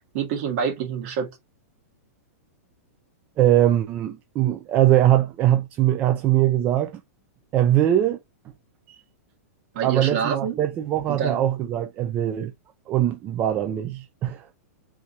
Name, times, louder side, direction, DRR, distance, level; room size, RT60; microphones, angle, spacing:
voice 1, 0.1-1.3 9.7-10.6 11.1-11.4, right 7 dB, 45° right, 1.8 m, -26 dB
voice 2, 3.4-7.0 7.5-8.2 8.9-9.0 9.8-12.5 12.9-14.5, right 12 dB, 20° right, 0.3 m, -21 dB
3.6 x 2.9 x 3.9 m
supercardioid pair, 165°, 8 cm